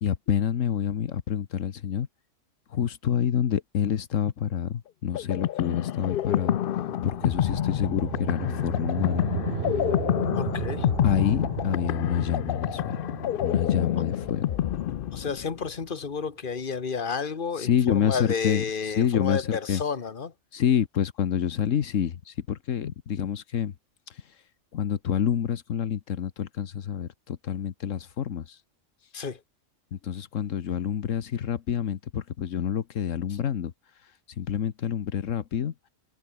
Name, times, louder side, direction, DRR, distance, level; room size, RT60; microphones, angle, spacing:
voice 1, 0.0-2.1 2.7-6.6 7.0-9.3 11.0-13.0 13.4-14.4 17.6-19.8 20.5-23.7 24.7-28.6 29.9-33.7 34.4-35.7, left 9 dB, 80° left, 1.4 m, -27 dB
sound 1, 5.1-15.7, left 12 dB, 60° left, 0.6 m, -28 dB
sound 2, 6.2-16.3, right 9 dB, 55° right, 0.9 m, -36 dB
voice 2, 10.3-10.9 14.0-14.1 15.1-20.3 29.1-29.4, left 5 dB, 40° left, 1.7 m, -31 dB
omnidirectional pair, 1.3 m